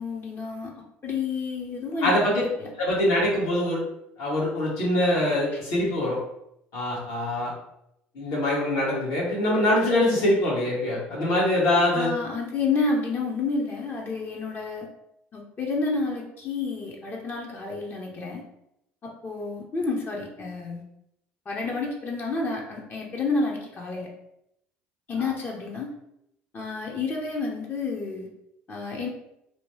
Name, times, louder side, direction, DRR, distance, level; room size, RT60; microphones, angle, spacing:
voice 1, 0.0-2.7 11.9-14.9 15.3-18.4 19.0-20.8 21.5-24.1 25.1-25.9 26.5-28.3 28.7-29.1, left 3 dB, 40° left, -1 dB, 0.7 m, -30 dB
voice 2, 2.0-2.4 2.8-3.8 4.2-6.2 6.7-7.5 8.1-12.1, left 1 dB, 65° left, -4 dB, 1.3 m, -23 dB
2.9 x 2.2 x 3.1 m, 0.80 s
hypercardioid pair, 70°, 6 cm